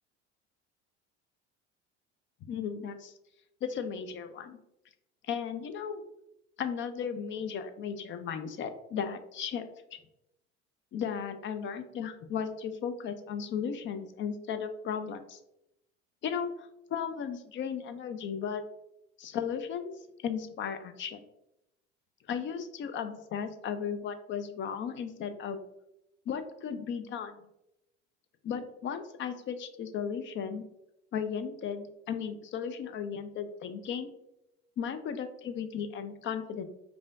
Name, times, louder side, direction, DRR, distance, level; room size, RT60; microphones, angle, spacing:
voice 1, 2.5-3.1 3.6-4.6 5.2-6.0 6.6-10.0 10.9-15.4 16.2-18.6 19.2-19.9 20.2-21.2 22.3-25.6 26.3-27.4 28.4-30.6 31.1-34.1 34.8-36.6, left 7 dB, 35° left, 10 dB, 0.5 m, -35 dB
4.8 x 2.4 x 2.4 m, 0.83 s
hypercardioid pair, 70°, 35 cm